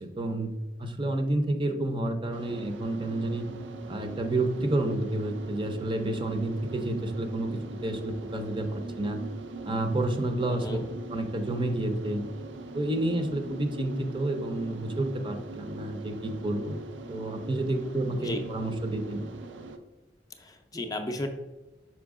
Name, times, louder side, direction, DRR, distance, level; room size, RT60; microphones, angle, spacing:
voice 1, 0.0-3.5 3.9-9.2 9.6-10.8 11.1-12.2 12.7-16.8 17.1-19.2, right 1 dB, 25° right, 6 dB, 0.6 m, -30 dB
sound 1, 2.3-19.8, right 2 dB, 80° right, 0.6 m, -41 dB
voice 2, 10.5-10.9 18.2-18.4 20.4-21.3, left 1 dB, 20° left, 5 dB, 0.5 m, -34 dB
6.0 x 4.5 x 3.6 m, 1.1 s
head